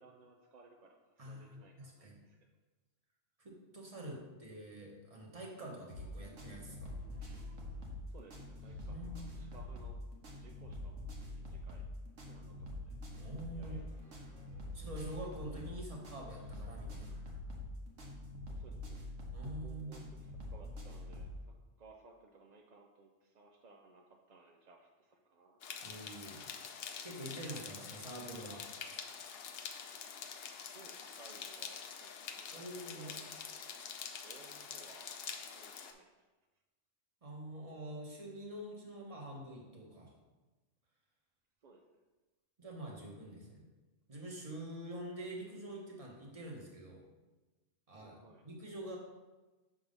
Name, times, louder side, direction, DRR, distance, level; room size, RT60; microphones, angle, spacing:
voice 1, 0.0-2.5 8.1-9.0 9.3-10.0 10.3-11.1 11.4-11.8 12.2-13.0 13.5-13.8 18.5-19.1 19.6-25.9 30.6-33.7 34.2-35.2 35.4-36.3 41.6-42.0 48.0-48.4, right 3 dB, 55° right, 1 dB, 0.5 m, -60 dB
voice 2, 1.2-2.2 3.4-6.9 8.8-9.5 13.2-13.8 14.7-17.1 19.3-20.0 25.8-26.5 27.0-29.0 32.5-33.2 37.2-40.1 42.6-43.6 44.1-47.0 47.9-48.1 48.4-49.0, right 1 dB, 30° right, -2 dB, 1.2 m, -46 dB
sound 1, 5.9-21.4, left 1 dB, 90° right, 1.5 m, -45 dB
sound 2, 25.6-35.9, left 7 dB, 60° left, 0.7 m, -46 dB
6.0 x 3.7 x 5.2 m, 1.2 s
omnidirectional pair, 1.2 m